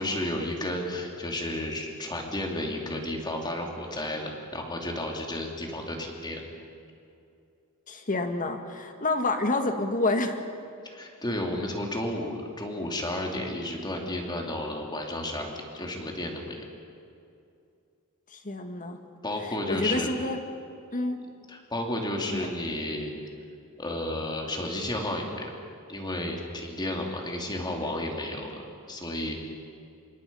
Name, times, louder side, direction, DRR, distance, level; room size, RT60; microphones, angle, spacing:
voice 1, 0.0-6.5 10.8-16.6 19.2-20.1 21.5-23.1 23.8-25.5 25.9-29.4, left 1 dB, 20° left, 1 dB, 3.1 m, -32 dB
voice 2, 7.9-10.4 18.3-19.0 19.4-20.4 20.9-21.2 22.3-22.5, left 2 dB, 35° left, 6 dB, 1.8 m, -28 dB
27.0 x 22.5 x 5.6 m, 2.5 s
head